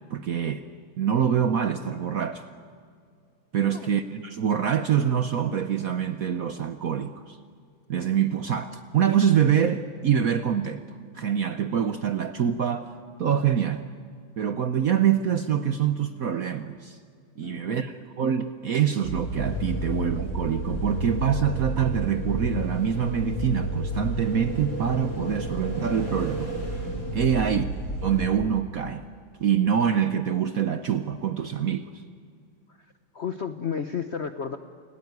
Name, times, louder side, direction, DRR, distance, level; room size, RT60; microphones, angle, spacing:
voice 1, 0.1-0.6 1.0-2.4 3.5-7.4 7.9-12.9 13.2-13.8 14.4-17.0 17.4-26.5 27.1-27.7 28.0-29.0 29.4-31.9, right 8 dB, 60° right, 10 dB, 0.9 m, -25 dB
voice 2, 17.4-17.9 33.1-34.6, left 7 dB, 60° left, 9 dB, 0.7 m, -32 dB
sound 1, 19.0-28.2, right 1 dB, 40° left, 5.2 m, -31 dB
29.0 x 18.0 x 9.5 m, 2.1 s
omnidirectional pair, 2.3 m